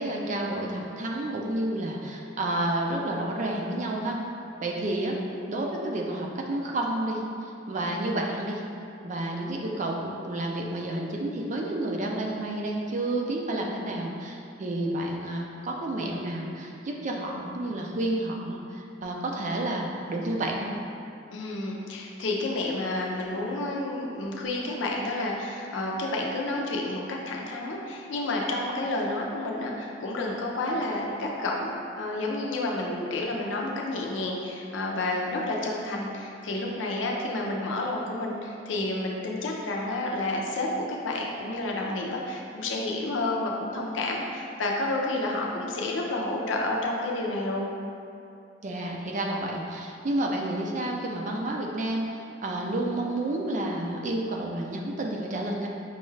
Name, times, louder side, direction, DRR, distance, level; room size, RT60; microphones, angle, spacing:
voice 1, 0.0-4.2 4.6-5.2 5.5-8.6 9.0-20.7 48.6-52.0 52.4-55.7, right 1 dB, 40° right, 0 dB, 0.4 m, -30 dB
voice 2, 21.3-47.7, left 2 dB, 80° left, -1 dB, 0.6 m, -30 dB
5.2 x 2.4 x 3.1 m, 2.6 s
head